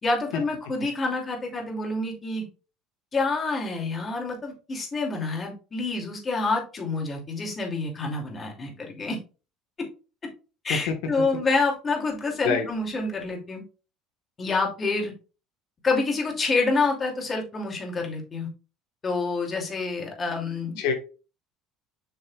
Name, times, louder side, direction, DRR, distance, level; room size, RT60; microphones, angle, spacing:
voice 1, 0.0-2.4 3.1-9.2 10.6-13.6 14.4-15.1 15.8-18.5 19.0-20.8, left 3 dB, 25° left, 1 dB, 2.7 m, -27 dB
voice 2, 10.7-11.2 12.4-12.7 20.8-20.9, left 6 dB, 80° left, 4 dB, 1.5 m, -26 dB
6.9 x 6.6 x 2.4 m, 0.33 s
cardioid pair, 130°, 0 cm